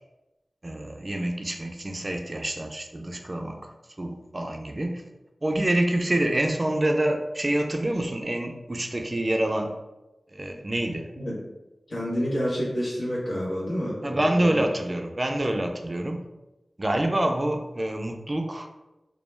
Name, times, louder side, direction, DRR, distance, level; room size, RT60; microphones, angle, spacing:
voice 1, 0.6-5.0 5.4-9.7 10.3-11.1 14.0-16.2 16.8-18.7, right 1 dB, 40° right, 3 dB, 0.3 m, -27 dB
voice 2, 11.9-14.6, equal, 85° left, -6 dB, 0.8 m, -29 dB
2.2 x 2.0 x 3.1 m, 1.0 s
wide cardioid pair, 50°, 0 cm